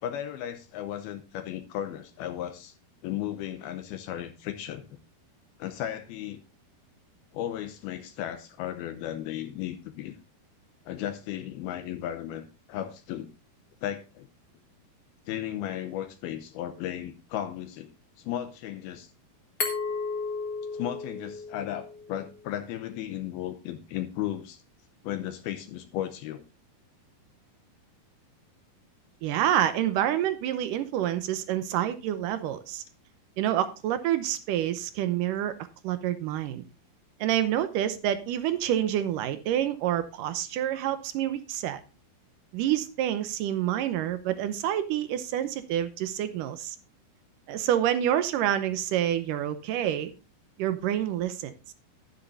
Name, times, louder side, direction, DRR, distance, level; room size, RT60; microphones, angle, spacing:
voice 1, 0.0-2.8 3.0-5.0 5.6-6.4 7.3-10.2 10.9-13.3 13.8-14.3 15.3-19.1 20.7-24.6 25.0-26.4, left 11 dB, 80° left, 8 dB, 2.6 m, -35 dB
Glass, 19.6-22.4, left 4 dB, 45° left, 1.4 m, -34 dB
voice 2, 29.2-32.8 33.4-35.6 35.8-36.6 37.2-41.8 42.5-46.8 47.5-50.1 50.6-51.5, right 11 dB, 75° right, 11 dB, 2.1 m, -28 dB
12.0 x 10.0 x 2.6 m, 0.30 s
omnidirectional pair, 4.5 m